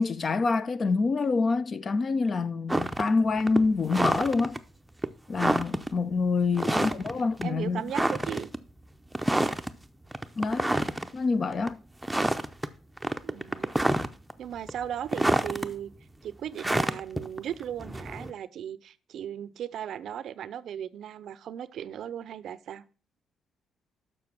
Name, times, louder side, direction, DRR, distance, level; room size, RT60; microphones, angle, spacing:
voice 1, 0.0-4.6 5.3-7.8 10.4-10.7 11.1-11.8, left 4 dB, 40° left, 0.6 m, -26 dB
sound 1, 2.7-3.1 3.4-4.6 5.0-5.1 5.3-5.9 6.6-7.1 7.4-7.5 7.9-8.6 9.1-9.7 10.1-11.1 11.5-11.7 12.0-12.7 13.0-14.3 14.7-15.7 16.6-18.3, right 1 dB, 5° right, 0.7 m, -27 dB
voice 2, 6.6-8.5 13.2-13.7 14.4-15.9 16.2-22.8, right 9 dB, 70° right, 0.5 m, -37 dB
6.9 x 6.2 x 5.8 m
cardioid pair, 90°, 0 cm